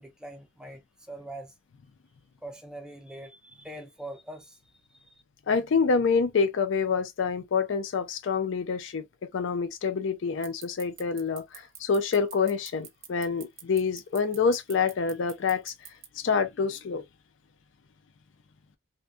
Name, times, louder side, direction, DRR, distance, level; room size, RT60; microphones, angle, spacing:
voice 1, 0.0-1.5 2.4-4.6 4.9-5.1, right 1 dB, 5° right, 0.4 m, -43 dB
voice 2, 5.5-9.0 9.3-15.7 16.2-17.0, left 5 dB, 60° left, 0.4 m, -27 dB
sound 1, 10.4-16.1, right 10 dB, 70° right, 0.6 m, -44 dB
2.6 x 2.1 x 2.3 m
head